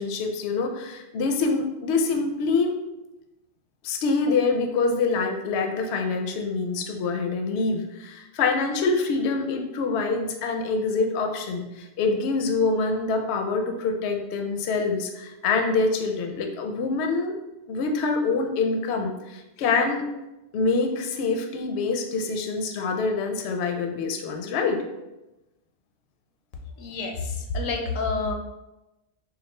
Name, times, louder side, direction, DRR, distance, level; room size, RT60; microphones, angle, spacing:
voice 1, 0.0-2.7 3.8-17.3 17.7-20.1 20.5-24.8, left 4 dB, 65° left, 3 dB, 0.7 m, -25 dB
voice 2, 26.8-28.3, left 3 dB, 85° left, 3 dB, 1.0 m, -28 dB
4.1 x 2.4 x 3.1 m, 0.99 s
omnidirectional pair, 1.3 m